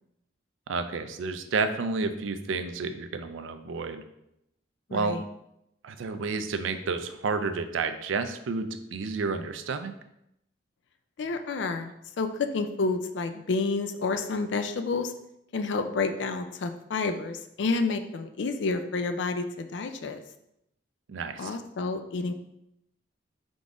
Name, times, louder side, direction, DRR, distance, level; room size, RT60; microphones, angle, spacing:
voice 1, 0.7-4.0 4.9-5.2 5.8-9.9 21.1-21.5, right 4 dB, 85° right, 9 dB, 0.4 m, -30 dB
voice 2, 4.9-5.2 11.2-15.1 15.5-20.2 21.4-22.3, left 3 dB, 70° left, 8 dB, 0.4 m, -29 dB
3.9 x 3.5 x 3.7 m, 0.81 s
head